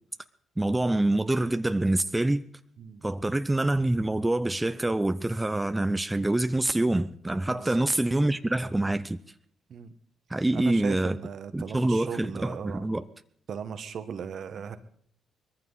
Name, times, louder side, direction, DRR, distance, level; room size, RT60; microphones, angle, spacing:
voice 1, 0.6-2.4 3.0-9.2 10.3-11.2 11.5-13.1, right 1 dB, 15° right, 0.8 m, -26 dB
voice 2, 7.5-7.8 9.7-9.9 10.5-12.9 13.5-14.8, right 7 dB, 55° right, 1.3 m, -37 dB
22.0 x 14.5 x 4.0 m
hypercardioid pair, 45°, 0 cm